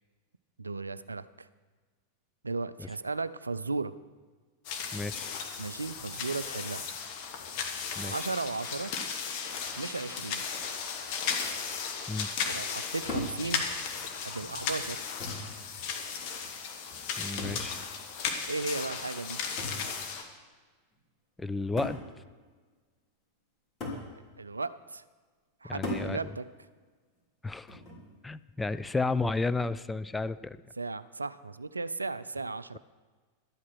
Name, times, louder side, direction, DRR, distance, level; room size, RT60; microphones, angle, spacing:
voice 1, 0.6-1.5 2.4-3.9 5.6-6.8 8.0-8.9 9.8-10.4 12.4-13.6 14.2-15.0 18.5-19.4 24.1-25.0 25.6-26.5 30.8-32.8, right 3 dB, 80° right, 16 dB, 0.4 m, -35 dB
sound 1, 4.6-20.2, left 6 dB, 45° left, 1.5 m, -36 dB
voice 2, 4.9-5.3 8.0-8.1 12.1-12.3 17.2-17.8 21.4-22.0 25.6-26.3 27.4-27.8 28.2-30.6, left 3 dB, 10° left, 12 dB, 0.3 m, -32 dB
sound 2, 13.1-13.4 14.5-14.6 15.2-15.6 17.4-17.7 19.6-19.9 20.9-21.0 21.8-22.1 23.8-24.1 25.8-26.1 27.7-28.1, left 2 dB, 25° left, 3.2 m, -36 dB
12.0 x 8.5 x 6.2 m, 1.4 s
figure-of-eight pair, 90°, 0 cm